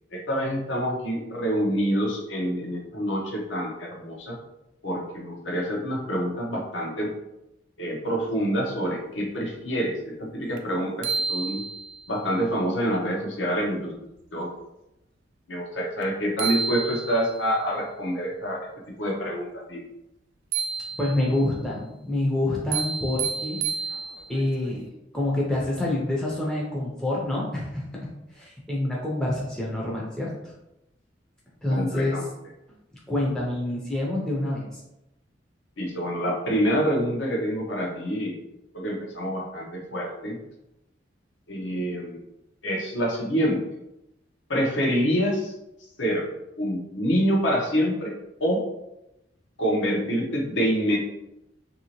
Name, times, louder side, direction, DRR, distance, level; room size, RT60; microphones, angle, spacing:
voice 1, 0.1-4.4 4.8-7.1 7.8-11.6 12.1-14.0 14.3-14.5 15.5-18.7 19.0-19.8 31.7-32.2 35.8-38.4 38.7-40.4 41.5-42.2 42.6-43.6 44.5-45.5 46.0-46.3 46.6-48.1 48.4-48.7 49.6-51.0, equal, 75° left, -1 dB, 0.8 m, -26 dB
sound 1, 10.6-10.7 11.0-12.1 16.0-16.1 16.4-17.4 20.5-21.4 22.7-24.4, right 6 dB, 85° right, 0.3 m, -30 dB
voice 2, 21.0-23.6 24.3-24.9 25.1-27.8 28.3-30.5 31.6-32.2 33.1-34.8, left 1 dB, 5° left, -5 dB, 0.5 m, -27 dB
2.9 x 2.7 x 2.9 m, 0.90 s
head